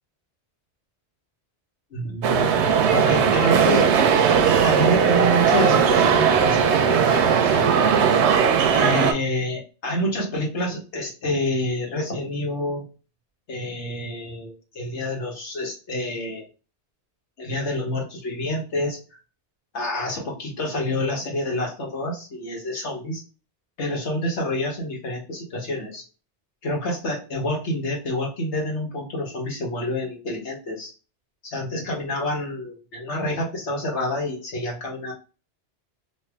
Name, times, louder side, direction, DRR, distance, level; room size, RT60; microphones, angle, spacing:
voice 1, 1.9-2.5 2.9-3.9 4.6-7.8 8.7-12.8 13.5-16.4 17.4-19.0 19.7-23.2 23.8-26.0 26.6-30.9 31.4-35.1, left 1 dB, 85° left, -1 dB, 1.5 m, -28 dB
sound 1, 2.2-9.1, right 7 dB, 85° right, 0.9 m, -18 dB
3.3 x 2.5 x 3.4 m, 0.34 s
omnidirectional pair, 1.1 m